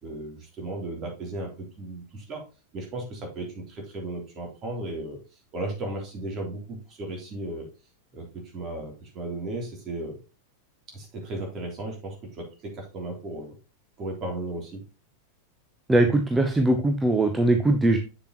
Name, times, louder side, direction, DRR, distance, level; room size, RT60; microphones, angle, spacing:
voice 1, 0.0-2.4 2.7-5.2 5.5-7.7 8.1-10.2 10.9-13.5 14.0-14.8, right 2 dB, 30° right, 1 dB, 3.4 m, -35 dB
voice 2, 15.9-18.0, right 2 dB, 10° right, 5 dB, 0.9 m, -21 dB
7.8 x 6.9 x 3.0 m, 0.31 s
figure-of-eight pair, 90°, 0 cm